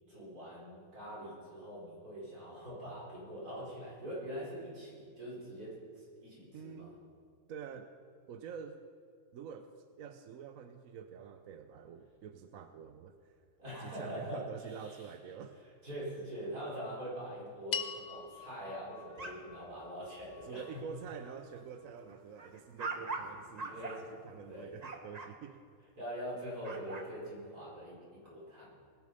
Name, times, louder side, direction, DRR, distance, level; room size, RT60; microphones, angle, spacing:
voice 1, 0.0-6.9 13.6-15.1 15.8-20.6 23.6-24.0 24.5-24.7 26.0-28.8, equal, 90° right, -6 dB, 5.2 m, -43 dB
voice 2, 6.5-6.9 7.5-7.9 8.3-8.8 9.3-9.7 10.0-13.3 13.8-15.6 20.4-23.9 24.2-25.6, right 7 dB, 70° right, 8 dB, 1.0 m, -47 dB
sound 1, 17.7-22.2, left 6 dB, 50° left, 0.5 m, -45 dB
sound 2, 19.0-19.8 20.2-20.4 20.8-21.1 21.5-25.3 26.5-27.1, right 3 dB, 30° right, 1.1 m, -43 dB
20.5 x 8.3 x 5.4 m, 2.2 s
omnidirectional pair, 1.6 m